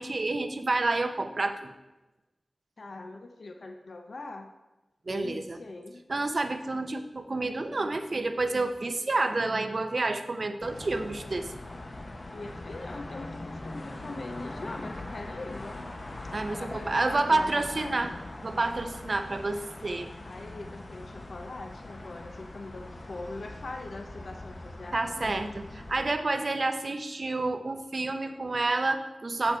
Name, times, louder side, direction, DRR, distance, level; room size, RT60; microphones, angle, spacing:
voice 1, 0.0-1.7 5.1-5.6 6.1-11.5 16.3-18.1 18.4-20.1 24.9-29.6, right 2 dB, 55° right, 8 dB, 0.7 m, -29 dB
voice 2, 2.8-4.5 5.1-6.1 12.3-15.9 16.5-18.2 20.2-25.3, left 2 dB, 75° left, 4 dB, 0.7 m, -42 dB
sound 1, 10.6-26.1, left 2 dB, 45° left, 0.9 m, -42 dB
7.5 x 7.0 x 4.5 m, 1.1 s
wide cardioid pair, 65°, 0 cm